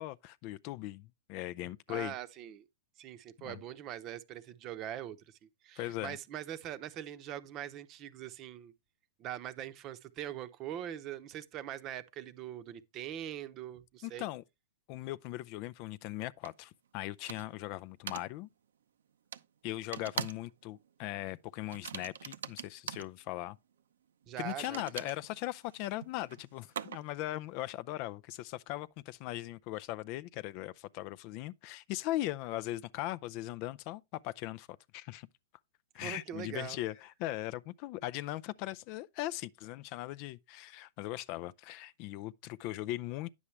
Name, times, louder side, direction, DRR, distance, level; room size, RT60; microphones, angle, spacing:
voice 1, 0.0-2.1 3.4-3.6 5.8-6.2 14.0-14.4 14.9-18.5 19.6-23.6 24.4-34.7 34.9-35.3 35.9-43.3, left 16 dB, 40° left, 0.4 m, -39 dB
voice 2, 1.9-2.7 3.0-8.7 9.2-14.3 24.3-24.8 36.0-36.8, right 11 dB, 30° right, 0.8 m, -42 dB
sound 1, 16.4-16.5 17.3-17.6 18.1-18.3 19.3-19.4 19.9-20.5 20.8-21.0 21.7-23.1 24.5-27.2, right 8 dB, 80° right, 0.7 m, -42 dB
9.8 x 7.1 x 3.2 m
hypercardioid pair, 145°, 0 cm